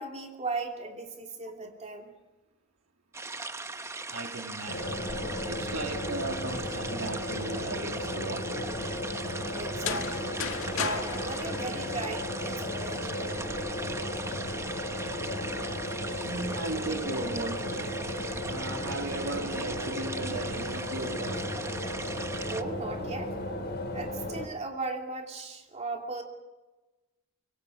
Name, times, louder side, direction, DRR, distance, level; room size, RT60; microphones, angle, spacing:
voice 1, 0.0-2.1 9.5-10.4 10.7-13.5 22.4-23.6 23.9-26.2, right 3 dB, 35° right, 2.8 m, -37 dB
sound 1, 3.1-22.6, right 3 dB, 15° right, 1.0 m, -39 dB
voice 2, 4.1-5.1 5.4-8.7 16.2-18.0 18.4-21.5, right 2 dB, 85° right, 2.6 m, -37 dB
sound 2, 4.7-24.5, left 1 dB, 55° left, 4.9 m, -35 dB
sound 3, 9.7-12.6, left 7 dB, 80° left, 1.7 m, -36 dB
25.0 x 24.5 x 5.1 m
head